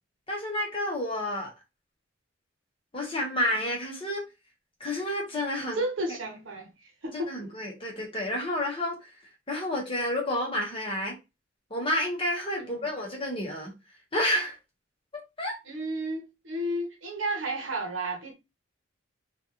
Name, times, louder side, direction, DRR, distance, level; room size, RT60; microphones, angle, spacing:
voice 1, 0.3-1.5 2.9-4.2 4.8-5.8 7.3-9.1 9.5-11.2 11.7-13.7 14.1-14.5 15.4-15.6, left 1 dB, 25° left, 1.1 m, -30 dB
voice 2, 5.6-7.3 12.6-12.8 15.7-18.3, right 1 dB, 75° right, 1.0 m, -33 dB
3.2 x 2.5 x 2.8 m
head